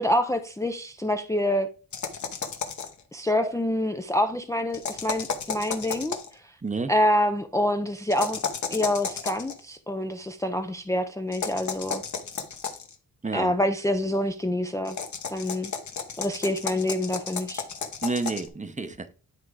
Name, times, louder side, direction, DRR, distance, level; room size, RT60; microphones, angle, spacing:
voice 1, 0.0-1.7 3.1-6.2 6.9-8.4 8.7-12.0 13.3-15.0 15.3-15.7 16.2-17.6, left 1 dB, 10° left, 0.5 m, -26 dB
sound 1, 1.9-3.0 4.7-6.3 8.1-9.5 11.3-12.9 14.9-18.5, left 6 dB, 50° left, 1.2 m, -33 dB
voice 2, 18.0-19.1, right 3 dB, 20° right, 0.8 m, -30 dB
10.5 x 3.5 x 4.8 m
wide cardioid pair, 105°, 37 cm